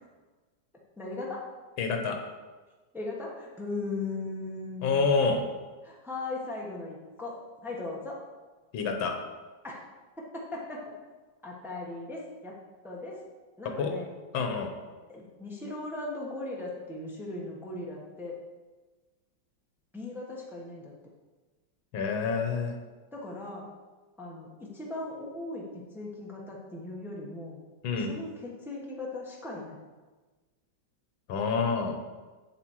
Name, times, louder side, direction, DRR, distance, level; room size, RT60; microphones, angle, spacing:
voice 1, 1.0-1.4 2.9-5.0 5.8-7.4 7.6-8.2 9.6-9.8 10.2-10.9 11.4-12.5 12.8-13.2 13.6-14.1 15.1-18.4 19.9-20.9 23.1-23.6 24.2-25.6 25.9-27.6 28.0-29.8, left 2 dB, ahead, -3 dB, 1.1 m, -38 dB
voice 2, 1.8-2.2 4.8-5.5 8.7-9.2 13.7-13.9 14.3-14.7 21.9-22.7 27.8-28.2 31.3-32.0, left 4 dB, 85° left, 5 dB, 1.8 m, -27 dB
8.0 x 7.3 x 4.7 m, 1.3 s
omnidirectional pair, 2.1 m